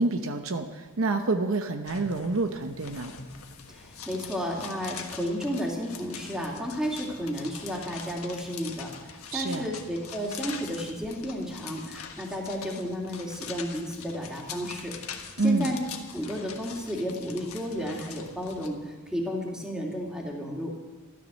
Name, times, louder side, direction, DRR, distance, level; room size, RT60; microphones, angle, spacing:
voice 1, 0.0-3.1 9.3-9.7 15.4-15.7, right 3 dB, 65° right, 6 dB, 0.9 m, -27 dB
sound 1, 1.8-18.7, left 6 dB, 80° left, 1.5 m, -43 dB
voice 2, 3.7-15.0 15.4-15.8 16.1-20.7, equal, 5° right, -2 dB, 2.7 m, -32 dB
13.5 x 13.0 x 6.4 m, 1.2 s
head